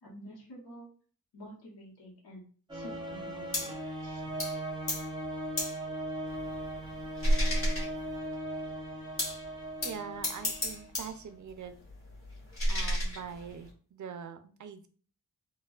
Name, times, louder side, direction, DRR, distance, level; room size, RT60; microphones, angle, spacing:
voice 1, 0.0-0.9 1.3-2.4 2.7-3.7 4.0-4.3, equal, 75° left, -3 dB, 1.1 m, -49 dB
sound 1, 2.7-11.1, right 1 dB, 10° right, 0.6 m, -39 dB
sound 2, 3.5-3.8 4.4-4.6 4.9-5.1 5.6-5.8 6.3-8.3 9.2-9.5 9.8-11.2 11.5-13.7, equal, 35° left, 1.2 m, -33 dB
voice 2, 9.8-11.8 12.7-14.9, right 7 dB, 50° right, 9 dB, 0.5 m, -43 dB
4.3 x 2.2 x 2.3 m, 0.42 s
wide cardioid pair, 135°, 39 cm